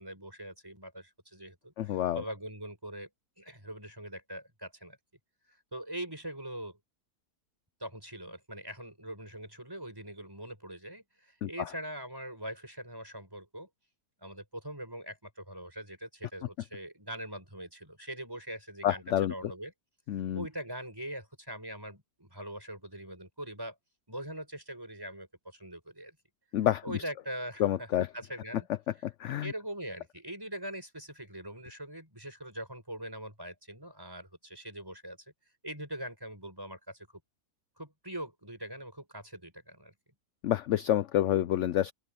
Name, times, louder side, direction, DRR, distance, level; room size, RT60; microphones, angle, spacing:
voice 1, 0.0-3.1 3.4-5.0 5.5-6.8 7.8-13.7 14.2-19.7 20.3-23.8 24.1-26.2 26.8-28.7 29.0-35.2 35.6-37.1 37.8-39.9, right 1 dB, 15° right, 6.4 m, -42 dB
voice 2, 1.8-2.2 11.4-11.5 18.8-19.3 20.1-20.4 26.5-26.8 27.6-28.1 29.0-29.5 40.4-41.9, left 12 dB, 70° left, 0.7 m, -28 dB
open air
omnidirectional pair, 1.7 m